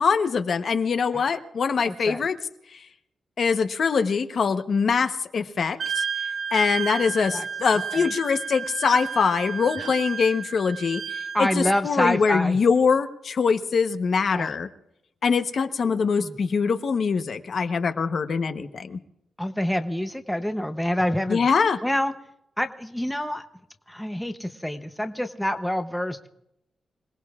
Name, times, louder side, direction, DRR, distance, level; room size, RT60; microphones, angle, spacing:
voice 1, 0.0-2.4 2.7-2.8 3.4-6.0 6.5-14.7 15.2-19.0 21.3-21.8, left 5 dB, 50° left, 8 dB, 0.9 m, -23 dB
voice 2, 1.8-2.2 7.3-7.5 7.9-8.1 9.8-9.9 11.3-12.6 14.3-14.5 15.9-16.4 19.4-21.5 21.8-22.1 22.6-23.4 23.9-26.3, left 1 dB, 5° left, 7 dB, 0.7 m, -27 dB
Wind instrument woodwind instrument, 5.8-11.8, right 6 dB, 50° right, 0.8 m, -32 dB
26.5 x 18.5 x 2.4 m, 0.82 s
wide cardioid pair, 140°, 0 cm